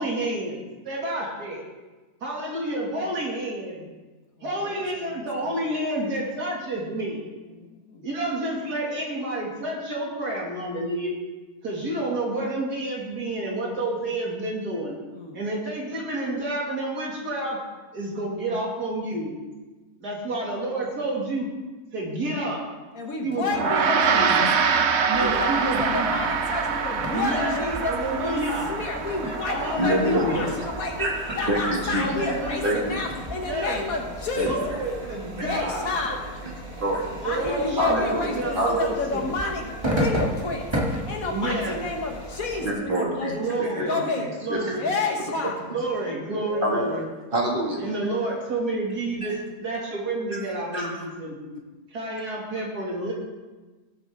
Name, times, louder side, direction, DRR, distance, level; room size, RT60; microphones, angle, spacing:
voice 1, 0.0-1.7 2.2-3.9 4.4-7.2 8.0-11.1 11.6-15.0 15.3-17.6 17.9-19.3 20.0-21.5 21.9-22.6 23.2-24.4 25.0-26.1 27.1-28.7 29.4-30.5 31.9-32.9 33.5-33.8 34.4-35.9 37.2-39.2 41.2-41.8 43.3-44.0 44.4-44.9 45.7-47.1 47.8-51.4 51.9-53.1, right 1 dB, 80° right, -3 dB, 2.9 m, -29 dB
voice 2, 4.4-5.7 7.5-8.1 15.1-15.4 22.9-28.0 28.2-28.4 28.7-34.8 35.4-36.3 37.2-44.3 44.8-45.6 46.3-47.0, left 3 dB, 60° left, 2 dB, 1.9 m, -31 dB
Gong, 23.5-33.1, right 6 dB, 55° right, 0.9 m, -26 dB
sound 1, 25.1-42.7, equal, 20° right, 1.6 m, -34 dB
voice 3, 29.8-30.4 31.0-32.3 32.6-32.8 34.4-34.5 36.8-37.2 37.8-38.8 42.6-43.3 43.6-44.2 44.5-44.8 46.6-46.8 47.3-47.8 50.7-51.0, right 1 dB, 35° right, -2 dB, 2.4 m, -26 dB
17.5 x 7.9 x 3.7 m, 1.2 s
omnidirectional pair, 1.7 m